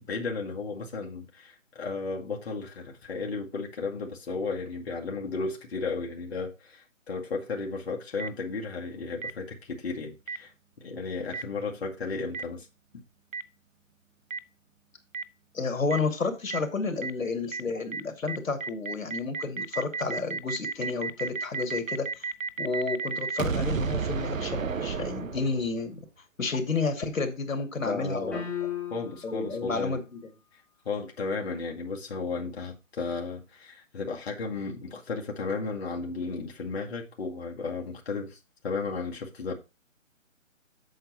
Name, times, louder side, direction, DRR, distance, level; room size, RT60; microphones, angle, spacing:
voice 1, 0.0-10.5 10.8-12.7 27.8-28.4 28.9-30.0 30.9-38.4 38.6-39.5, left 4 dB, 50° left, 2.1 m, -34 dB
Boom, 8.2-8.3 9.2-9.3 10.3-10.4 11.3-11.4 12.3-12.4 13.3-13.4 14.3-14.4 15.1-15.2 15.9-16.0 16.5-16.6 17.0-17.1 17.5-17.6 17.9-18.0 18.3-25.8, right 5 dB, 80° right, 1.0 m, -32 dB
voice 2, 15.5-22.3 22.6-26.0 26.4-28.4 29.2-30.2, left 4 dB, 85° left, 2.3 m, -31 dB
sound 1, 28.3-29.4, left 9 dB, 5° left, 2.7 m, -34 dB
7.8 x 7.5 x 4.1 m
hypercardioid pair, 155°, 39 cm